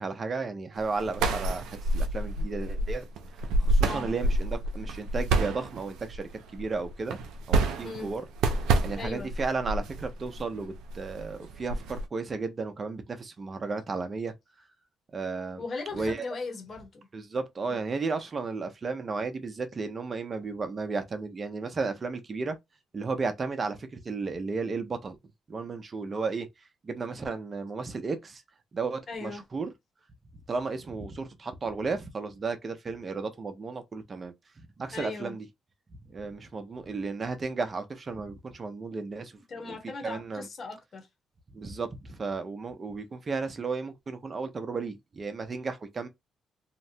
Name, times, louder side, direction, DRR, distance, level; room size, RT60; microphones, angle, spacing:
voice 1, 0.0-3.1 3.4-7.2 7.5-8.2 8.8-14.3 15.1-15.6 15.9-16.4 17.1-22.6 22.9-25.2 25.5-26.5 26.8-28.4 28.7-29.7 30.5-34.3 34.8-35.5 36.1-39.4 39.7-39.8 40.0-40.5 41.5-46.1, right 4 dB, 35° right, 0.7 m, -34 dB
sound 1, 0.8-12.1, right 2 dB, 90° right, 0.5 m, -29 dB
voice 2, 9.0-9.3 15.6-17.1 17.7-17.8 29.1-29.4 34.9-35.4 39.5-41.1, left 3 dB, 45° left, 1.1 m, -38 dB
2.9 x 2.1 x 2.7 m
cardioid pair, 90°, 0 cm